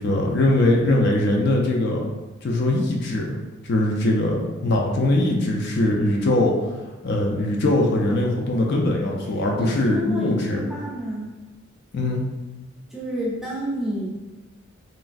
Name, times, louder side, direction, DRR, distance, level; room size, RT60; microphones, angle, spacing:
voice 1, 0.0-2.0 2.4-3.3 3.6-6.5 7.0-10.6 11.9-12.2, left 1 dB, 50° left, -1 dB, 0.3 m, -21 dB
voice 2, 9.6-11.4 12.9-14.1, equal, ahead, -6 dB, 0.5 m, -29 dB
3.1 x 2.3 x 2.5 m, 1.2 s
head